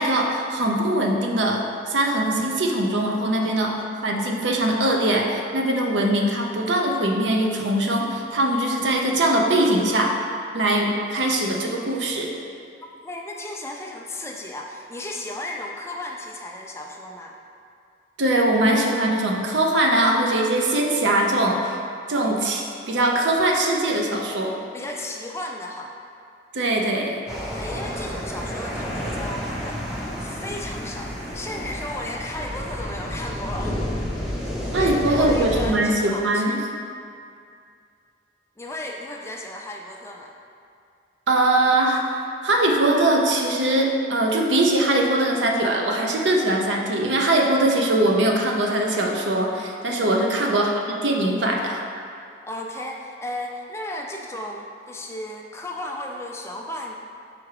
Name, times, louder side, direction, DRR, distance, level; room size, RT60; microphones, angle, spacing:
voice 1, 0.0-10.2 10.5-12.3 18.2-21.8 22.1-24.5 26.5-27.2 34.7-36.6 41.3-51.8, right 1 dB, 85° right, 1 dB, 0.7 m, -21 dB
voice 2, 13.0-17.4 24.7-25.9 27.5-33.8 34.7-36.6 38.6-40.3 50.1-50.5 52.4-57.0, left 1 dB, 15° left, 0 dB, 0.4 m, -35 dB
sound 1, 27.3-35.7, equal, 5° right, 0.8 m, -30 dB
5.8 x 3.5 x 4.8 m, 2.4 s
head